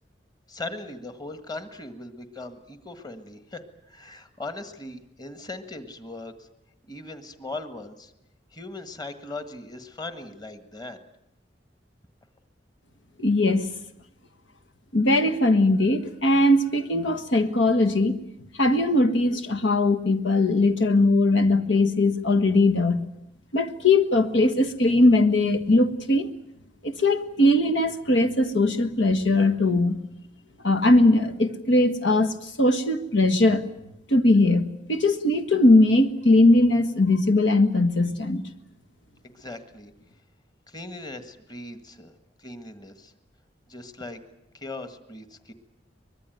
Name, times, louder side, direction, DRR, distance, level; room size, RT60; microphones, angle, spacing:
voice 1, 0.5-6.3 6.9-8.1 8.5-11.0 39.3-39.9 40.7-43.1 43.7-44.2 44.5-45.5, left 2 dB, 20° left, 9 dB, 1.6 m, -39 dB
voice 2, 13.2-13.7 14.9-18.2 18.5-23.0 23.5-26.3 26.8-30.0 30.6-33.6 34.1-38.4, left 2 dB, 80° left, 6 dB, 1.6 m, -20 dB
24.0 x 21.0 x 9.3 m, 0.82 s
head